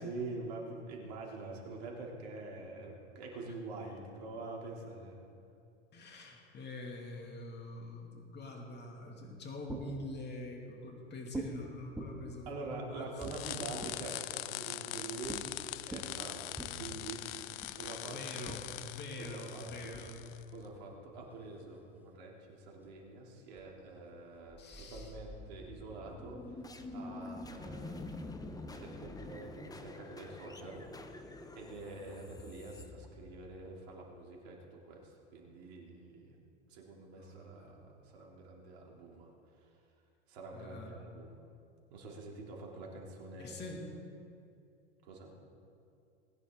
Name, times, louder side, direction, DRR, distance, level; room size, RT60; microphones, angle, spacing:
voice 1, 0.0-5.2 12.5-15.4 15.8-18.5 19.2-20.0 20.5-26.6 26.9-30.8 31.6-36.4 36.7-39.3 39.6-39.7 40.3-41.4 41.9-43.5 45.0-45.3, right 3 dB, 60° right, -1 dB, 3.3 m, -46 dB
voice 2, 5.9-13.1 17.6-17.8 18.0-18.6 18.9-20.2 24.6-25.1 37.2-37.7 40.5-41.0 43.4-43.9, left 2 dB, 30° left, 1 dB, 2.5 m, -45 dB
sound 1, 9.2-10.1 11.3-11.6 12.0-14.1 15.2-15.4 15.8-16.7 17.6-17.8 18.4-21.8 22.5-23.1 23.5-23.6 23.9-25.7 26.3-27.1, right 2 dB, 5° right, 1.7 m, -46 dB
sound 2, 13.2-20.4, left 17 dB, 55° left, 0.6 m, -42 dB
sound 3, 24.5-33.6, left 2 dB, 10° left, 0.9 m, -47 dB
20.5 x 10.0 x 3.9 m, 2.5 s
hypercardioid pair, 90°, 36 cm